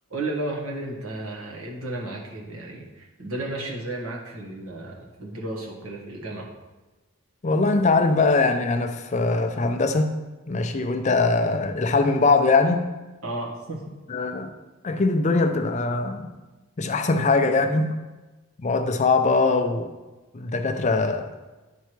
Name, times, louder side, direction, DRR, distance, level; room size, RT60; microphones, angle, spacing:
voice 1, 0.1-6.5 13.2-13.8, right 2 dB, 75° right, -2 dB, 1.3 m, -33 dB
voice 2, 7.4-10.1 10.5-12.9 14.1-14.5 14.8-16.3 16.8-18.0 18.6-19.9 20.3-21.2, left 3 dB, 35° left, 7 dB, 0.4 m, -22 dB
9.1 x 4.5 x 3.1 m, 1.2 s
head